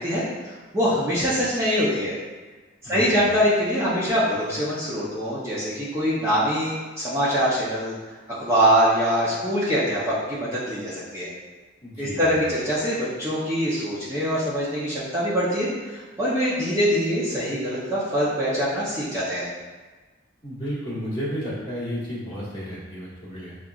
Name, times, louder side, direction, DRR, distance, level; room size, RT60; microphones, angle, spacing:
voice 1, 0.0-2.1 2.8-7.9 8.3-11.3 12.0-19.5, equal, 15° right, -10 dB, 0.7 m, -24 dB
voice 2, 2.8-3.3 11.8-12.5 20.4-23.6, equal, 25° left, -8 dB, 1.4 m, -32 dB
7.2 x 2.5 x 2.3 m, 1.3 s
head